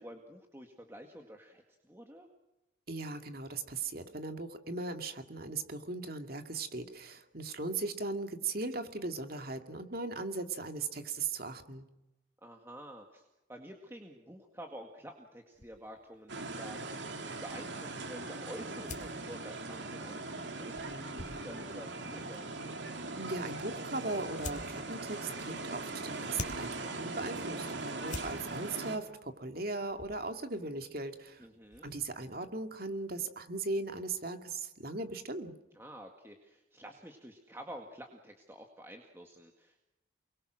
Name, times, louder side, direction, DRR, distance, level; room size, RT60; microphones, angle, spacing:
voice 1, 0.0-2.3 12.4-13.2 13.5-22.6 31.4-31.9 35.8-39.8, equal, 10° right, 2 dB, 2.0 m, -49 dB
voice 2, 2.9-11.8 23.1-31.5 31.8-35.5, right 3 dB, 50° right, 6 dB, 2.3 m, -38 dB
sound 1, 15.5-32.4, left 2 dB, 40° left, 3.1 m, -51 dB
sound 2, 16.3-29.0, right 3 dB, 65° right, 2.6 m, -40 dB
29.0 x 22.5 x 6.4 m, 0.97 s
head